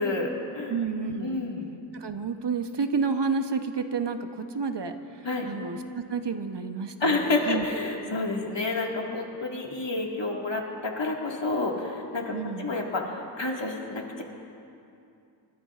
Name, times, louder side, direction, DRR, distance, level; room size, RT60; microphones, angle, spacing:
voice 1, 0.0-0.8 1.2-1.7 5.2-5.5 7.0-14.2, left 2 dB, 70° left, -1 dB, 2.0 m, -29 dB
voice 2, 0.7-1.4 1.9-7.7 12.3-12.7, right 5 dB, 65° right, 7 dB, 0.9 m, -30 dB
29.5 x 13.0 x 2.5 m, 2.6 s
wide cardioid pair, 40°, 45 cm